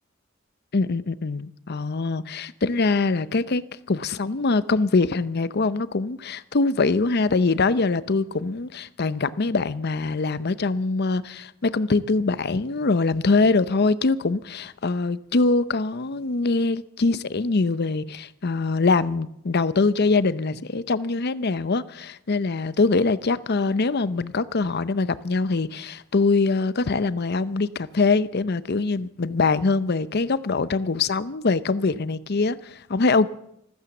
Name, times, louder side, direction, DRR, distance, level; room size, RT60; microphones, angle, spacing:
voice 1, 0.7-3.6 3.9-33.3, left 3 dB, 55° left, 0.7 m, -23 dB
14.5 x 14.0 x 7.1 m
head